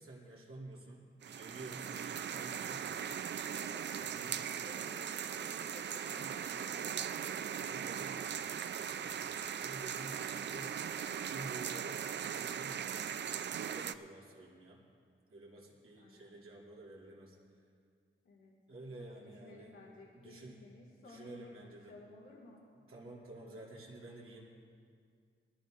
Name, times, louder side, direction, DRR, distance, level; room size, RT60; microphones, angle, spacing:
voice 1, 0.0-2.9 4.0-4.4 6.0-6.3 7.5-10.8 11.3-12.8 13.3-14.8 15.3-17.4 18.7-19.7 20.1-20.6 21.0-21.9 22.7-24.4, right 2 dB, 90° right, -4 dB, 2.7 m, -51 dB
sound 1, 1.2-13.9, right 8 dB, 55° right, 0.4 m, -39 dB
voice 2, 3.4-7.7 16.0-16.3 18.2-18.5 18.9-22.6, left 2 dB, 80° left, -7 dB, 2.2 m, -56 dB
21.0 x 14.5 x 2.6 m, 2.2 s
wide cardioid pair, 155°, 21 cm